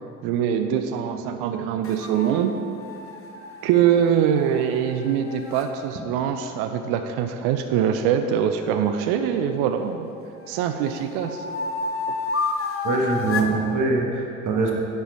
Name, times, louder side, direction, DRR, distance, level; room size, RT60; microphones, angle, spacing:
voice 1, 0.2-2.5 3.6-10.1 10.5-11.5, right 8 dB, 65° right, 7 dB, 0.6 m, -23 dB
sound 1, 1.8-5.7 8.6-9.9 10.4-13.6, left 4 dB, 30° left, 1.1 m, -32 dB
voice 2, 12.8-14.7, right 3 dB, 45° right, 0 dB, 1.4 m, -23 dB
9.9 x 4.7 x 4.6 m, 2.6 s
figure-of-eight pair, 50°, 42 cm